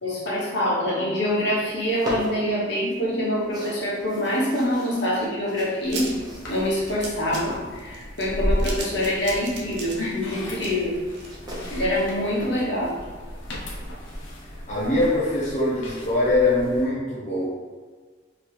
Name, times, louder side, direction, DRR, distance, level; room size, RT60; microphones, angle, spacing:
voice 1, 0.0-6.1 6.5-11.0 11.7-13.0, left 1 dB, 65° left, -6 dB, 1.3 m, -25 dB
sound 1, 1.3-11.9, equal, 20° right, 0.9 m, -41 dB
sound 2, 5.8-16.8, equal, 85° left, 0.9 m, -34 dB
sound 3, 5.9-12.0 12.3-12.4 12.7-12.8, right 3 dB, 60° right, 0.7 m, -38 dB
voice 2, 14.7-17.4, left 2 dB, 40° left, -8 dB, 0.7 m, -22 dB
4.1 x 3.0 x 3.4 m, 1.5 s
head